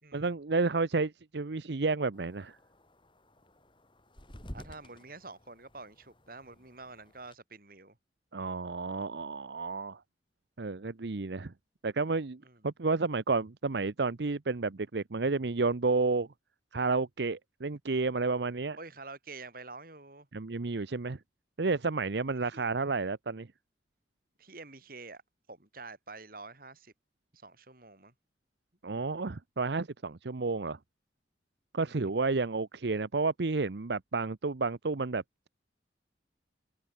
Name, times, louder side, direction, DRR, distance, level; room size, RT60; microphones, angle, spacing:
voice 1, 0.1-2.6 8.3-10.0 10.6-11.5 11.8-16.3 16.7-18.8 20.3-21.2 21.6-23.5 28.8-30.8 31.7-35.5, right 3 dB, 75° right, 0.8 m, -31 dB
sound 1, 2.1-7.3, equal, 30° left, 5.1 m, -52 dB
voice 2, 4.5-8.0 12.4-12.7 18.8-20.3 22.5-22.7 24.4-25.2 25.5-26.9 27.3-28.1 31.8-32.1, right 3 dB, 55° right, 4.5 m, -48 dB
head